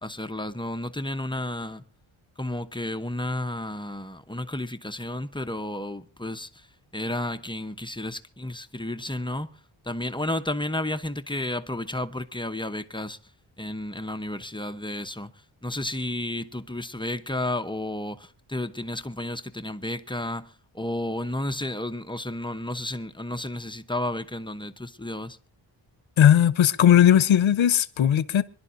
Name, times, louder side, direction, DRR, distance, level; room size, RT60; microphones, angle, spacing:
voice 1, 0.0-1.8 2.4-6.7 6.9-9.5 9.8-13.2 13.6-15.3 15.6-25.4, left 1 dB, 10° left, 0.9 m, -32 dB
voice 2, 26.2-28.4, left 10 dB, 80° left, 1.0 m, -18 dB
26.0 x 11.5 x 2.7 m
wide cardioid pair, 115°, 46 cm